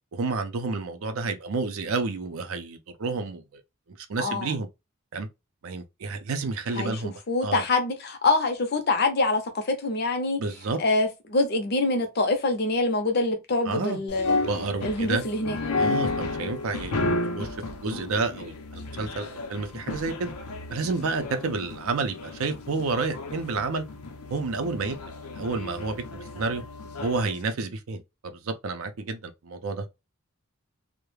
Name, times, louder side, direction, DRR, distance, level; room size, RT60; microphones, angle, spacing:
voice 1, 0.1-3.6 4.1-4.7 5.1-5.3 5.6-7.1 7.4-7.6 10.4-10.8 13.7-14.0 14.4-15.2 15.8-17.5 17.8-20.3 20.7-23.8 24.3-25.0 25.3-26.6 27.0-29.9, right 4 dB, 70° right, 0.5 m, -30 dB
voice 2, 4.2-4.5 6.8-10.4 10.8-14.4 14.8-16.0, left 2 dB, 45° left, 0.5 m, -25 dB
sound 1, 14.1-27.4, left 2 dB, 90° left, 0.5 m, -32 dB
2.3 x 2.1 x 3.1 m
head